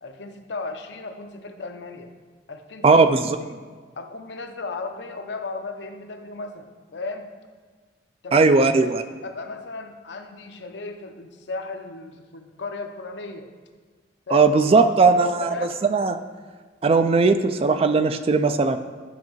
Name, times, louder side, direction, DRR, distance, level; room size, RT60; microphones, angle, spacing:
voice 1, 0.0-2.1 2.5-3.1 3.4-3.6 4.0-7.3 8.2-13.5 14.3-15.7, left 3 dB, 80° left, 5 dB, 0.7 m, -35 dB
voice 2, 2.8-3.2 8.3-9.0 14.3-15.5 15.9-16.2 16.8-18.8, right 4 dB, 35° right, 9 dB, 0.3 m, -18 dB
11.0 x 5.1 x 3.1 m, 1.5 s
head